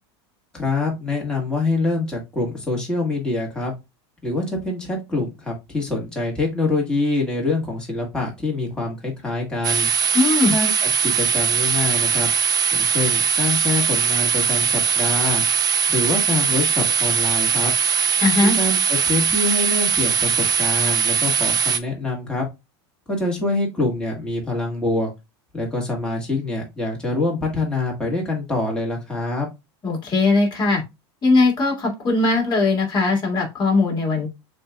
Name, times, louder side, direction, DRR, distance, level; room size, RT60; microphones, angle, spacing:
voice 1, 0.5-3.7 4.2-9.9 10.5-12.3 12.7-15.4 15.9-17.7 18.4-22.4 23.1-25.1 25.5-29.5, left 2 dB, 5° left, -2 dB, 1.6 m, -25 dB
sound 1, 9.6-21.8, right 6 dB, 30° right, 0.4 m, -20 dB
voice 2, 10.1-10.5 18.2-18.6 29.8-30.8 31.2-34.3, left 3 dB, 30° left, 0 dB, 2.0 m, -19 dB
6.9 x 2.6 x 2.2 m, 0.23 s
supercardioid pair, 125°, 14 cm